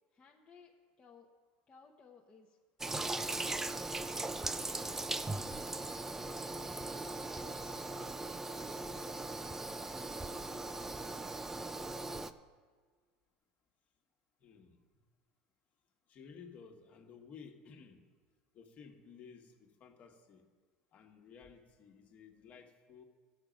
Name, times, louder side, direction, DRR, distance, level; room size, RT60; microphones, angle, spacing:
voice 1, 0.1-1.3 1.7-3.6 4.3-6.5 6.9-7.8 8.5-9.0, left 5 dB, 25° left, -1 dB, 0.9 m, -61 dB
Toilet flush, 2.8-12.3, right 2 dB, 10° right, 0.4 m, -39 dB
voice 2, 14.4-14.8 16.1-18.1 18.5-20.4 20.9-23.0, left 6 dB, 40° left, 4 dB, 1.4 m, -55 dB
14.5 x 6.4 x 5.1 m, 1.5 s
supercardioid pair, 125°, 4 cm